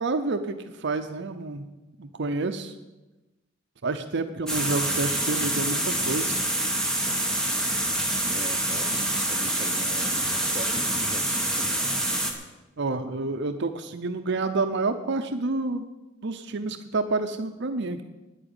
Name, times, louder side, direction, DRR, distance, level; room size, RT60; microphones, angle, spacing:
voice 1, 0.0-1.7 2.0-2.7 3.8-6.4 12.8-15.9 16.2-18.0, right 3 dB, 60° right, 8 dB, 0.7 m, -29 dB
sound 1, 4.5-12.3, right 1 dB, 5° left, 1.8 m, -26 dB
voice 2, 8.3-11.7, right 2 dB, 30° right, 4 dB, 1.0 m, -40 dB
10.0 x 8.9 x 8.9 m, 1.1 s
head